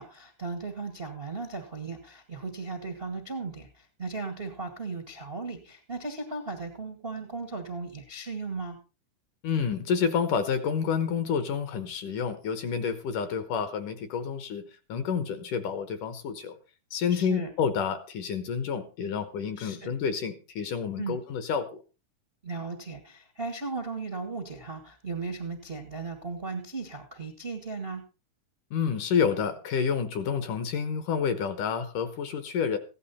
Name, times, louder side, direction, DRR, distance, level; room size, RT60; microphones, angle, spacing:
voice 1, 0.0-8.8 17.1-17.5 19.6-19.9 21.0-21.2 22.4-28.0, right 4 dB, 45° right, 6 dB, 0.7 m, -36 dB
voice 2, 9.4-14.6 14.9-16.6 16.9-21.8 28.7-32.8, left 6 dB, 65° left, 11 dB, 2.4 m, -29 dB
15.5 x 11.0 x 4.2 m, 0.32 s
omnidirectional pair, 4.4 m